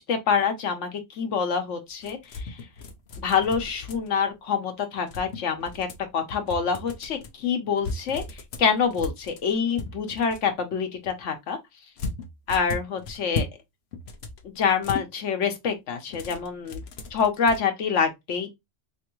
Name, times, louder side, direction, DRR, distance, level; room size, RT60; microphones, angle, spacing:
voice 1, 0.0-2.6 3.2-5.9 6.1-11.6 12.5-13.5 14.4-16.8 17.1-18.5, left 6 dB, 85° left, 1.2 m, -26 dB
sound 1, 2.0-4.3 5.0-6.1 6.5-7.3 7.8-10.5 12.0-13.6 13.9-15.1 16.1-17.6, left 3 dB, 65° left, 0.9 m, -36 dB
3.4 x 3.1 x 3.0 m
omnidirectional pair, 1.2 m